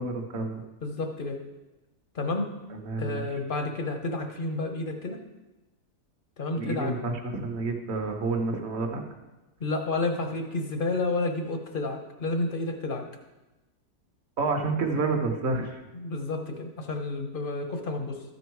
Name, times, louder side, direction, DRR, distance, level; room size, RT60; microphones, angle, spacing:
voice 1, 0.0-0.6 2.7-3.2 6.6-9.0 14.4-15.8, right 3 dB, 45° right, 4 dB, 1.2 m, -29 dB
voice 2, 0.8-1.4 2.1-2.5 3.0-5.2 6.4-6.9 9.6-13.0 15.9-18.2, left 2 dB, 40° left, 4 dB, 0.8 m, -30 dB
13.0 x 5.3 x 4.6 m, 1.0 s
omnidirectional pair, 1.7 m